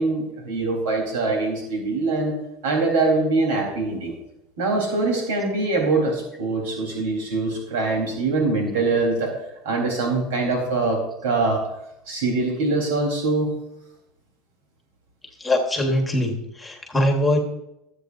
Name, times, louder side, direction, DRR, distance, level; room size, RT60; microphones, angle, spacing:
voice 1, 0.0-2.3 2.6-4.1 4.6-9.3 9.6-11.6 12.1-13.5, right 3 dB, 85° right, 0 dB, 4.0 m, -23 dB
voice 2, 15.4-17.4, left 1 dB, 5° left, 2 dB, 1.5 m, -22 dB
23.5 x 8.1 x 2.7 m, 0.86 s
supercardioid pair, 170°, 0 cm